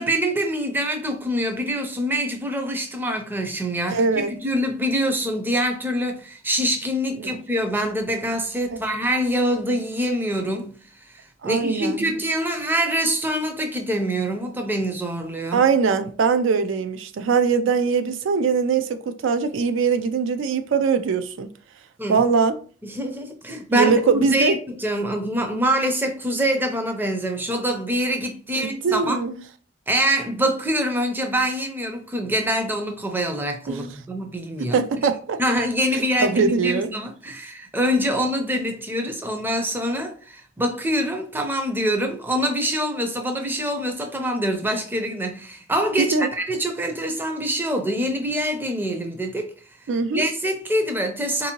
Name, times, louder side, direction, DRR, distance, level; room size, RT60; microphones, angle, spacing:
voice 1, 0.0-10.8 11.1-15.6 22.0-22.2 22.8-29.2 29.9-34.8 35.4-49.5 50.1-51.5, equal, 10° right, 0.4 m, -25 dB
voice 2, 3.9-4.3 7.2-7.4 11.4-12.1 15.5-21.5 22.1-22.6 23.7-24.6 28.6-29.4 33.7-33.9 34.6-35.4 36.2-36.9 46.0-46.3 49.9-50.2, right 5 dB, 85° right, 0.4 m, -21 dB
3.6 x 2.6 x 2.8 m
head